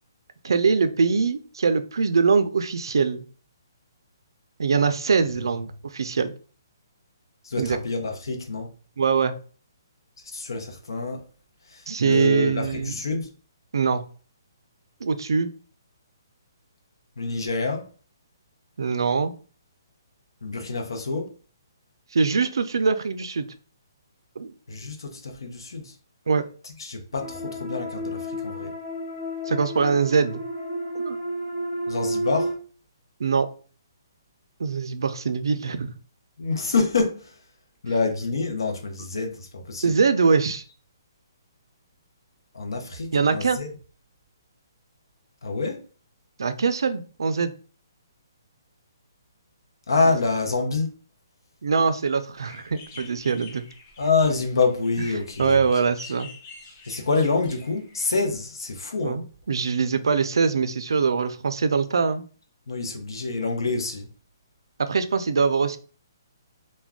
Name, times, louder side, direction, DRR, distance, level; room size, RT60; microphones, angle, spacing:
voice 1, 0.4-3.2 4.6-6.3 7.6-7.8 9.0-9.3 11.9-12.9 13.7-14.0 15.0-15.5 18.8-19.3 22.1-23.5 24.4-24.5 26.3-26.4 29.4-30.4 31.0-31.2 33.2-33.5 34.6-35.9 39.8-40.6 43.1-43.6 46.4-47.5 51.6-53.6 55.4-56.3 59.0-62.2 64.8-65.8, right 5 dB, 85° right, 0.4 m, -23 dB
voice 2, 7.4-8.7 10.3-11.2 11.7-13.3 17.2-17.9 20.4-21.3 24.7-25.9 26.8-28.7 31.9-32.5 36.4-37.3 37.8-39.9 42.5-43.7 45.4-45.8 49.9-50.9 54.0-55.6 56.9-59.2 62.7-64.1, left 4 dB, 85° left, 0.7 m, -26 dB
sound 1, 27.2-32.5, equal, 5° left, 0.9 m, -31 dB
sound 2, 52.4-58.2, left 4 dB, 25° left, 0.4 m, -47 dB
2.3 x 2.1 x 3.5 m
hypercardioid pair, 170°, 2 cm